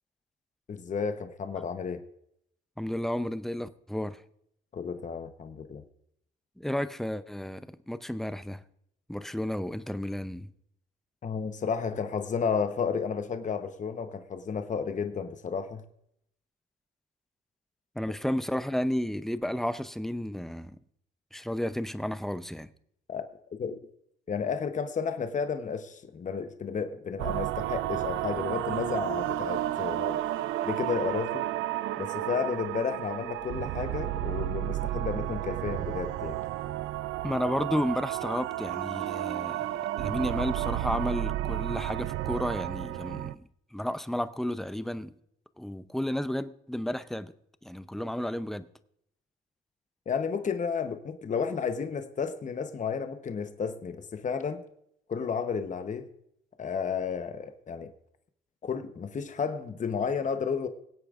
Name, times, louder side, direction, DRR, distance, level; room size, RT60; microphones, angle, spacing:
voice 1, 0.7-2.0 4.7-5.8 11.2-15.8 23.1-23.3 23.6-23.8 24.3-30.2 30.6-31.5 32.0-36.4 50.1-54.6 55.1-56.1 56.6-57.9 58.6-60.7, left 6 dB, 40° left, 1.0 m, -32 dB
voice 2, 2.8-4.2 6.6-8.6 9.1-10.5 18.0-20.8 21.3-22.7 37.2-39.7 40.0-43.4 43.7-45.1 45.6-47.3 47.6-48.7, left 1 dB, ahead, 0.6 m, -32 dB
sound 1, 27.2-43.3, right 14 dB, 85° right, 0.5 m, -32 dB
21.5 x 8.4 x 2.5 m
cardioid pair, 90°, 20 cm